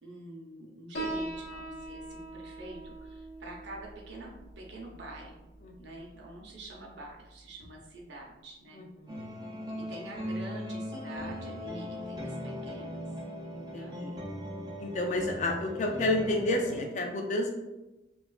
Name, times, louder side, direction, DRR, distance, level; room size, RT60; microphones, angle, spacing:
voice 1, 0.0-5.5 5.8-8.8 9.9-13.0 13.7-14.0, right 2 dB, 70° right, -1 dB, 0.6 m, -46 dB
Piano, 0.9-8.0, right 2 dB, 80° left, 0.6 m, -42 dB
voice 2, 8.7-9.2 13.5-14.2 14.8-17.5, left 2 dB, 40° left, 2 dB, 0.3 m, -30 dB
sound 1, 9.1-16.8, equal, 20° right, 0.4 m, -39 dB
2.8 x 2.3 x 2.3 m, 1.0 s
head